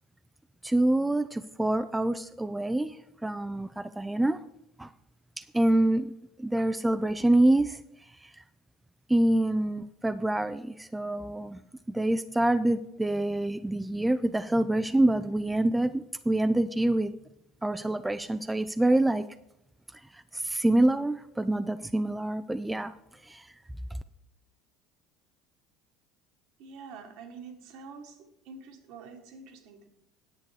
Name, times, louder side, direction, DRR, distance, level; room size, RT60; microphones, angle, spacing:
voice 1, 0.6-3.0 3.2-4.4 4.8-4.9 5.4-6.1 6.4-7.8 8.2-8.3 9.1-11.6 11.9-17.1 17.6-19.2 20.3-22.9 23.2-23.5, right 1 dB, 10° right, 0.5 m, -26 dB
voice 2, 26.6-28.2 28.5-29.9, right 5 dB, 60° right, 1.7 m, -46 dB
9.6 x 8.4 x 4.7 m
figure-of-eight pair, 65°, 0 cm